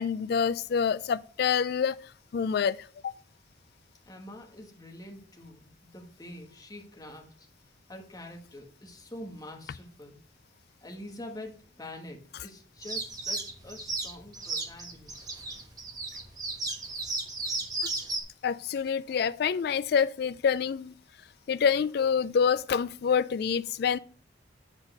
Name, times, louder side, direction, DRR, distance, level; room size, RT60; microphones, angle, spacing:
voice 1, 0.0-2.0 2.3-2.8 3.0-3.1 18.4-20.9 21.5-24.0, left 7 dB, 55° left, 0.3 m, -26 dB
voice 2, 4.1-7.3 7.9-10.2 10.8-15.3, left 1 dB, 20° left, 1.3 m, -45 dB
sound 1, 12.8-18.2, right 2 dB, 20° right, 1.2 m, -34 dB
8.0 x 4.1 x 6.4 m
head